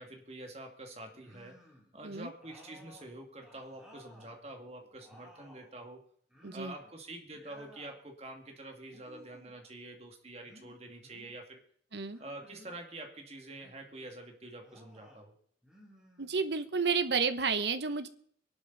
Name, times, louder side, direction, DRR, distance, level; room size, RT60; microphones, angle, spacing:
voice 1, 0.0-1.7 1.9-6.1 6.5-11.6 12.2-15.3, right 2 dB, 35° right, 3 dB, 2.2 m, -47 dB
sound 1, 1.1-1.9 2.4-4.4 4.8-5.7 6.3-7.0 7.3-8.0 8.8-9.6 10.4-11.4 12.1-12.8 13.5-14.1 14.6-15.2 15.6-16.7, left 1 dB, 5° right, 3.3 m, -58 dB
voice 2, 6.4-6.7 11.9-12.2 16.2-18.1, right 5 dB, 80° right, 11 dB, 1.1 m, -31 dB
24.0 x 11.5 x 4.0 m, 0.62 s
head